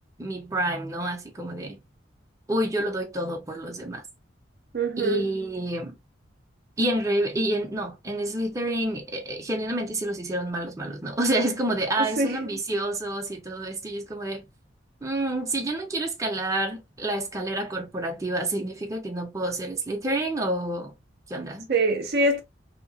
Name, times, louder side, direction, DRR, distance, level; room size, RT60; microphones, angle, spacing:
voice 1, 0.2-1.8 2.5-4.0 5.0-5.9 6.8-14.5 15.0-20.9 21.3-21.7, right 1 dB, 15° right, 0.7 m, -28 dB
voice 2, 4.7-5.3 12.0-12.4 21.7-22.4, right 2 dB, 55° right, 0.6 m, -24 dB
2.8 x 2.2 x 2.7 m
head